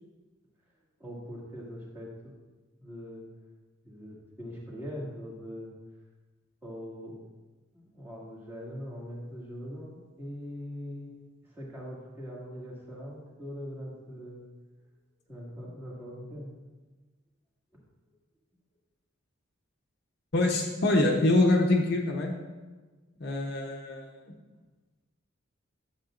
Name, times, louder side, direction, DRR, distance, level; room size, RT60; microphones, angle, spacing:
voice 1, 1.0-2.3 2.8-3.2 3.8-5.7 6.6-7.2 7.7-11.1 11.4-14.4 15.3-16.5, equal, 10° right, -6 dB, 1.9 m, -41 dB
voice 2, 20.3-22.3 23.2-24.1, left 2 dB, 55° left, 0 dB, 0.9 m, -24 dB
10.5 x 7.4 x 2.5 m, 1.2 s
head